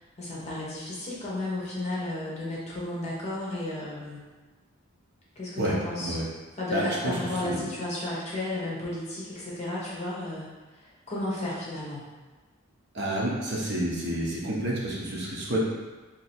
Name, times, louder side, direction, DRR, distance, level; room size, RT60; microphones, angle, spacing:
voice 1, 0.2-4.2 5.4-6.1 6.6-10.5 10.8-12.0, left 1 dB, 30° left, -6 dB, 1.0 m, -33 dB
voice 2, 5.6-6.3 6.7-7.6 12.9-15.6, right 1 dB, 55° right, -5 dB, 0.9 m, -29 dB
3.0 x 2.8 x 4.2 m, 1.3 s
head